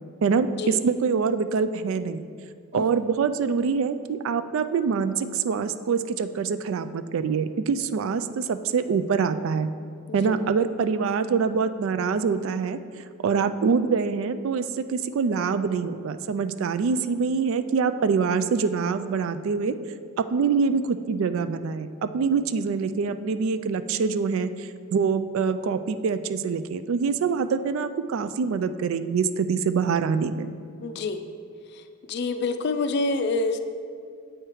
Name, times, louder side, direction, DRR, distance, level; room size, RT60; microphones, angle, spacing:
voice 1, 0.2-2.3 2.7-9.7 10.1-12.8 13.2-19.8 20.2-30.5, right 5 dB, 65° right, 12 dB, 0.3 m, -25 dB
voice 2, 30.8-31.2 32.1-33.6, left 3 dB, 50° left, 9 dB, 0.4 m, -26 dB
7.8 x 4.5 x 4.8 m, 2.3 s
head